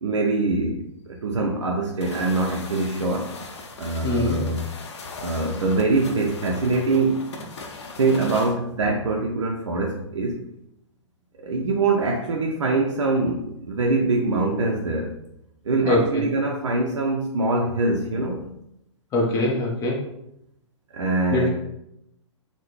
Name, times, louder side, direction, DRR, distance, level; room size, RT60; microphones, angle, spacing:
voice 1, 0.0-3.3 3.8-4.6 5.2-7.3 8.0-10.4 11.4-15.1 15.6-18.4 20.9-21.5, right 3 dB, 70° right, 0 dB, 0.5 m, -23 dB
sound 1, 2.0-8.6, left 3 dB, 60° left, 0.6 m, -39 dB
voice 2, 4.0-4.4 15.9-16.2 19.1-20.0 21.3-21.5, left 1 dB, 20° left, 0 dB, 0.7 m, -22 dB
3.6 x 2.1 x 3.0 m, 0.81 s
figure-of-eight pair, 115°, 16 cm